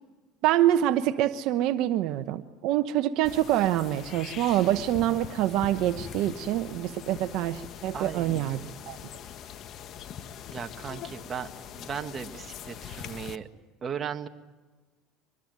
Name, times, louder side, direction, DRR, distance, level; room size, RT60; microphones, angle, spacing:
voice 1, 0.4-8.6 8.9-9.0, right 13 dB, 65° right, 10 dB, 1.0 m, -26 dB
sound 1, 3.2-13.4, left 8 dB, 50° left, 1.5 m, -42 dB
voice 2, 7.9-8.7 10.5-11.5 11.7-13.5 13.8-14.3, right 7 dB, 35° right, 6 dB, 1.7 m, -37 dB
24.5 x 20.5 x 9.5 m, 1.4 s
supercardioid pair, 105°, 0 cm